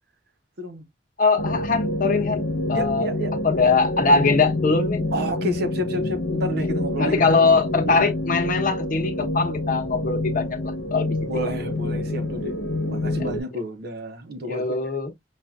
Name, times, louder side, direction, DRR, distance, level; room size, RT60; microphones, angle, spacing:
voice 1, 1.2-2.4 2.7-3.1 3.4-5.0 7.0-10.6 10.9-11.1 13.2-13.3 14.5-15.1, left 4 dB, 50° left, 1.0 m, -21 dB
sound 1, 1.4-13.4, left 2 dB, 85° left, 1.0 m, -27 dB
voice 2, 2.7-3.3 5.1-7.4 7.8-8.1 11.2-12.5 12.9-14.6, equal, 60° right, 0.9 m, -30 dB
5.6 x 2.5 x 2.4 m
head